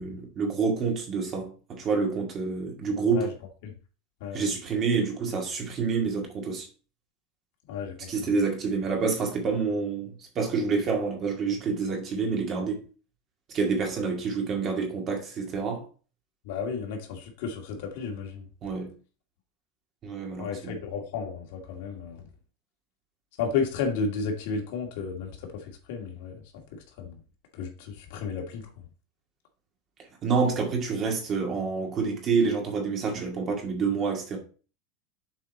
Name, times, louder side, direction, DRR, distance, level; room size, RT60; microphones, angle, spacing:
voice 1, 0.0-3.3 4.3-6.7 8.1-12.8 13.5-15.8 18.6-18.9 20.0-20.8 30.2-34.4, right 5 dB, 25° right, 2.0 m, -28 dB
voice 2, 7.7-8.1 16.5-18.4 20.4-22.2 23.4-25.3 25.9-26.3 27.0-27.1 27.5-28.6, left 5 dB, 55° left, 2.1 m, -32 dB
7.6 x 4.6 x 4.1 m
supercardioid pair, 180°, 0 cm